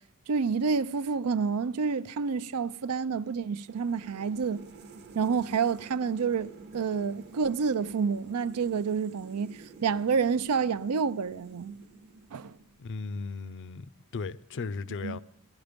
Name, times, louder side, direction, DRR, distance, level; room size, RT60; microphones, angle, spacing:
voice 1, 0.3-4.6 5.1-11.7 12.3-12.6 15.0-15.2, right 5 dB, 85° right, 0.5 m, -29 dB
sound 1, 3.7-13.0, right 3 dB, 50° right, 0.9 m, -50 dB
voice 2, 12.8-15.2, left 4 dB, 55° left, 0.5 m, -36 dB
15.5 x 14.0 x 5.2 m
head